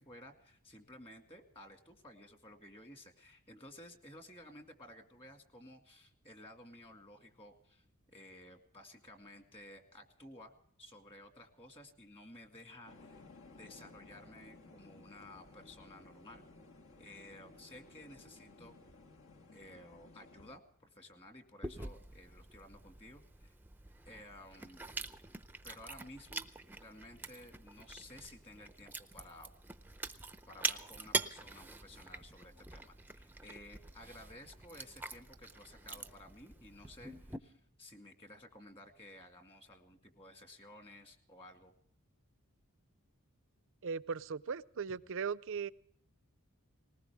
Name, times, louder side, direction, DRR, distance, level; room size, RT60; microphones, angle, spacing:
voice 1, 0.0-10.5 10.8-16.4 17.0-18.7 19.5-23.5 24.1-24.9 25.6-29.5 30.5-41.7 44.9-45.0, left 1 dB, 25° left, 5 dB, 2.1 m, -55 dB
sound 1, 12.9-20.6, left 2 dB, 60° left, 1.6 m, -57 dB
Chewing mastication, 21.6-37.4, right 4 dB, 10° right, 0.6 m, -44 dB
voice 2, 43.8-45.7, right 6 dB, 60° right, 17 dB, 0.5 m, -38 dB
20.0 x 19.0 x 3.5 m, 0.66 s
head